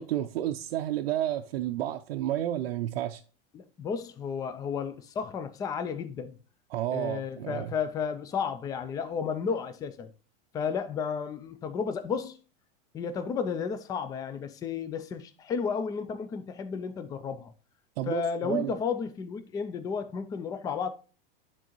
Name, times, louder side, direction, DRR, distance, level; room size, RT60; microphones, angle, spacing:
voice 1, 0.0-3.2 6.7-7.7 18.0-18.8, right 12 dB, 85° right, 0.5 m, -31 dB
voice 2, 3.5-6.4 6.9-10.1 10.5-12.4 12.9-17.5 18.1-20.9, left 6 dB, 15° left, 0.3 m, -33 dB
10.5 x 3.8 x 3.0 m
supercardioid pair, 140°, 29 cm